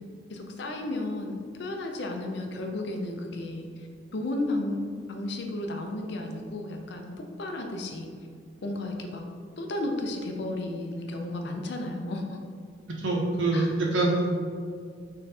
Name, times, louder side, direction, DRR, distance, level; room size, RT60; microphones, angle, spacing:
voice 1, 0.3-3.9 4.1-4.8 5.1-7.1 7.4-8.1 8.6-9.2 9.6-12.4 13.5-13.7, left 2 dB, 65° left, 3 dB, 0.5 m, -33 dB
voice 2, 13.0-14.3, right 2 dB, 85° right, -1 dB, 0.9 m, -25 dB
4.2 x 3.7 x 3.3 m, 2.2 s
head